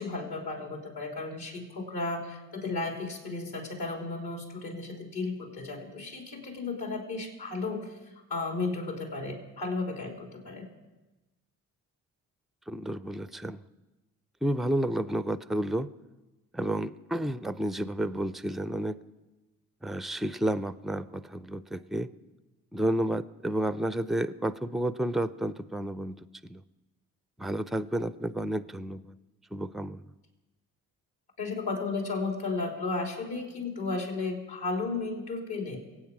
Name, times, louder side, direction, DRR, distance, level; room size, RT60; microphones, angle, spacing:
voice 1, 0.0-8.0 8.3-10.7 31.4-35.8, left 3 dB, 60° left, 2 dB, 3.5 m, -34 dB
voice 2, 12.7-13.6 14.4-15.9 16.5-19.0 19.8-22.1 22.7-26.6 27.4-29.1 29.5-30.0, right 1 dB, ahead, 16 dB, 0.4 m, -31 dB
24.0 x 8.9 x 4.8 m, 1.1 s
hypercardioid pair, 45°, 44 cm